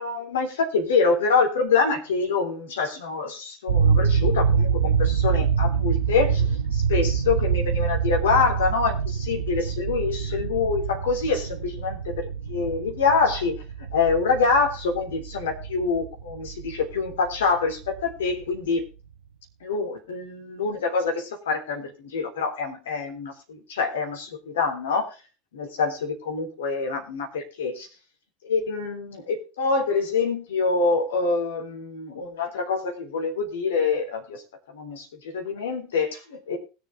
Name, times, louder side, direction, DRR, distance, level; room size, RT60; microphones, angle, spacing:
voice 1, 0.0-12.1 12.5-13.5 13.9-18.8 19.6-25.1 25.5-27.9 28.4-34.4 34.7-35.1 35.3-36.6, left 4 dB, 70° left, 3 dB, 3.5 m, -25 dB
sound 1, 3.7-18.5, right 6 dB, 75° right, 0.9 m, -26 dB
20.5 x 6.8 x 3.6 m, 0.32 s
figure-of-eight pair, 75°, 0 cm